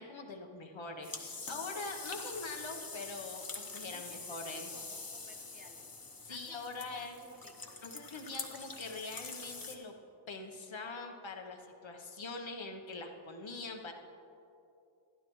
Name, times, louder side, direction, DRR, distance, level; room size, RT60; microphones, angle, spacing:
voice 1, 0.0-4.7 6.2-7.2 7.8-9.9 10.3-13.9, left 3 dB, 70° left, 3 dB, 1.0 m, -43 dB
sound 1, 1.0-9.8, left 3 dB, 45° left, 1.1 m, -45 dB
voice 2, 3.9-8.0, equal, 15° right, 1 dB, 1.2 m, -58 dB
12.0 x 11.5 x 3.1 m, 2.8 s
wide cardioid pair, 40°, 48 cm